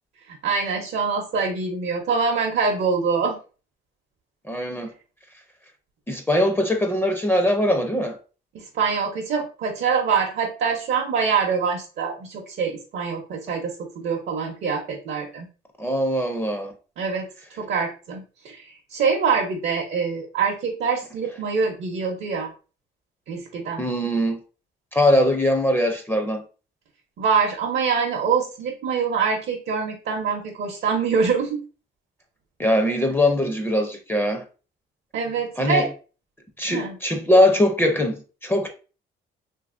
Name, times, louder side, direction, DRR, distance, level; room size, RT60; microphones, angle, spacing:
voice 1, 0.3-3.4 8.5-15.5 17.0-17.3 17.6-22.5 23.3-23.9 27.2-31.6 35.1-35.9 36.6-37.0, right 5 dB, 65° right, 0.7 m, -25 dB
voice 2, 4.5-4.9 6.1-8.2 15.8-16.7 23.8-24.4 24.9-26.4 32.6-34.4 35.6-35.9 36.6-38.7, left 1 dB, 10° left, 0.5 m, -21 dB
2.8 x 2.6 x 2.4 m
cardioid pair, 90°, 20 cm